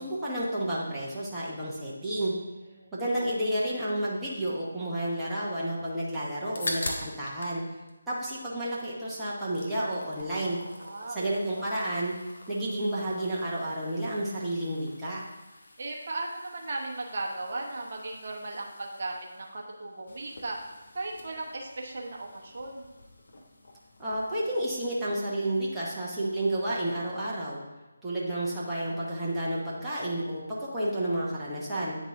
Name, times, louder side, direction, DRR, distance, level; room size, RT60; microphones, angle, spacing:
voice 1, 0.0-2.3 2.9-7.6 8.1-10.6 11.1-12.1 12.5-15.2 24.0-27.6 28.0-32.0, right 1 dB, 5° right, -9 dB, 1.0 m, -31 dB
sound 1, 6.5-7.6 7.9-8.9 9.2-24.7, left 1 dB, 55° left, 1.0 m, -44 dB
voice 2, 10.8-11.7 15.8-20.6 20.9-22.9, right 2 dB, 45° right, -1 dB, 1.0 m, -37 dB
9.0 x 4.0 x 3.7 m, 1.1 s
figure-of-eight pair, 155°, 0 cm